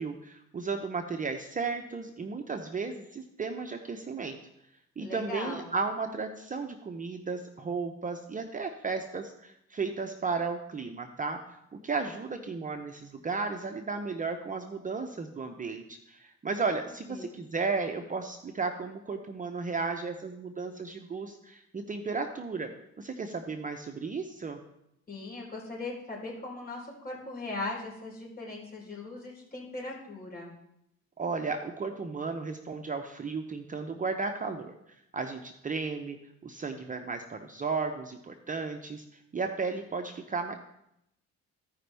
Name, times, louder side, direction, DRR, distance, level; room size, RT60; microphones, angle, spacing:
voice 1, 0.0-4.4 5.0-11.4 11.7-22.7 23.0-24.6 31.2-34.7 35.1-36.2 36.4-39.0 39.3-40.5, right 4 dB, 25° right, 5 dB, 0.7 m, -34 dB
voice 2, 5.0-5.6 17.1-17.3 25.1-30.5, left 2 dB, 30° left, -2 dB, 3.9 m, -39 dB
15.0 x 5.2 x 3.4 m, 0.81 s
cardioid pair, 90°, 30 cm